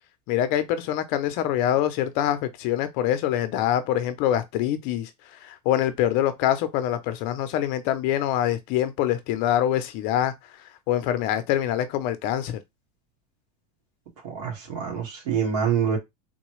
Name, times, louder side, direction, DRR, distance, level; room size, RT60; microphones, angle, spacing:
voice 1, 0.3-5.1 5.4-10.3 10.9-12.6, left 11 dB, 45° left, 0.6 m, -25 dB
voice 2, 14.2-16.0, right 7 dB, 75° right, 2.0 m, -26 dB
3.8 x 2.3 x 3.1 m
supercardioid pair, 145°, 21 cm